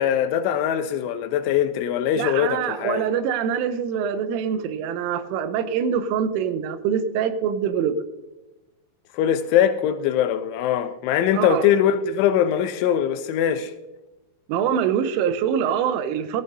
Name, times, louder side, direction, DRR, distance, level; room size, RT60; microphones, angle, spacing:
voice 1, 0.0-3.1 9.1-13.7, left 9 dB, 85° left, 2.9 m, -22 dB
voice 2, 2.2-8.0 11.3-11.7 14.5-16.4, right 8 dB, 85° right, 3.3 m, -24 dB
15.0 x 14.5 x 2.6 m
omnidirectional pair, 5.7 m